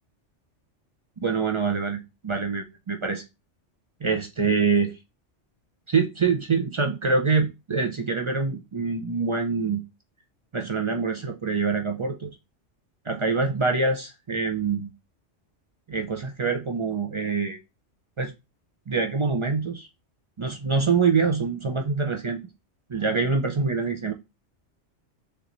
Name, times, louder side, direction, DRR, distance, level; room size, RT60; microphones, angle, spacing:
voice 1, 1.2-3.2 4.0-4.9 5.9-9.8 10.5-12.3 13.1-14.9 15.9-17.6 18.2-18.3 18.9-19.9 20.4-22.4 22.9-24.1, right 4 dB, 45° right, 0.4 m, -25 dB
6.5 x 2.6 x 3.0 m
omnidirectional pair, 1.2 m